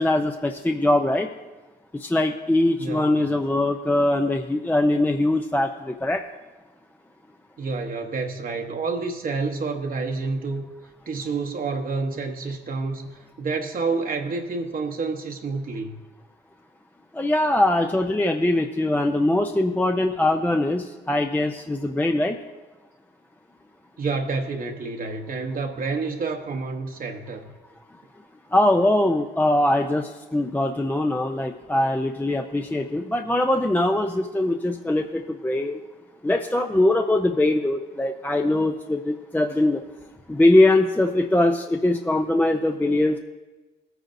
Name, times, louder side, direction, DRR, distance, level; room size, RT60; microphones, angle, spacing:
voice 1, 0.0-1.3 1.9-6.2 17.1-22.4 28.5-35.8 36.2-39.8 40.3-43.2, left 1 dB, 10° left, 5 dB, 0.5 m, -22 dB
voice 2, 2.8-3.3 7.6-10.7 11.1-16.0 24.0-27.5, right 4 dB, 45° right, 3 dB, 0.9 m, -29 dB
17.5 x 9.2 x 2.6 m, 1.2 s
cardioid pair, 90°, 20 cm